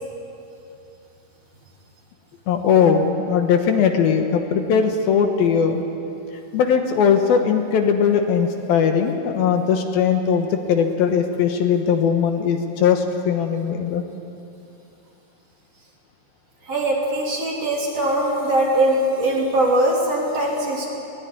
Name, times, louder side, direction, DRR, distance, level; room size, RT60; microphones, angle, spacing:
voice 1, 2.5-5.8 6.5-14.0, left 7 dB, 75° left, 5 dB, 2.9 m, -19 dB
voice 2, 16.7-20.9, right 1 dB, 40° right, -2 dB, 3.9 m, -21 dB
20.5 x 19.0 x 9.8 m, 2.7 s
omnidirectional pair, 4.6 m